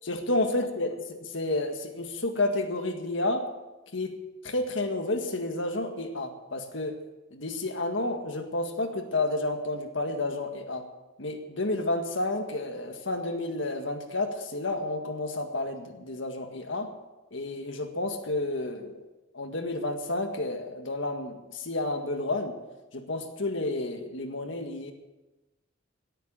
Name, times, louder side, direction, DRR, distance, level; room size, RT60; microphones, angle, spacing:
voice 1, 0.0-3.5 3.9-4.2 4.4-7.0 7.3-10.9 11.2-16.9 17.3-19.0 19.3-22.6 22.9-24.9, left 2 dB, 70° left, 6 dB, 1.9 m, -30 dB
17.5 x 9.1 x 7.8 m, 1.1 s
head